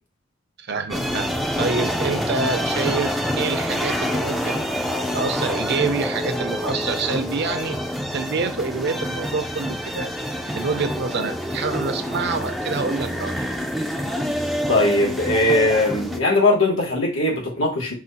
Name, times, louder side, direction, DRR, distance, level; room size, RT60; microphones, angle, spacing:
voice 1, 0.6-4.7 5.1-7.8 8.1-10.1 10.5-13.5, right 4 dB, 55° right, 0.6 m, -27 dB
sound 1, 0.9-16.2, equal, ahead, 0.4 m, -26 dB
voice 2, 14.7-17.9, left 2 dB, 90° left, 1.6 m, -20 dB
4.9 x 2.4 x 4.1 m
head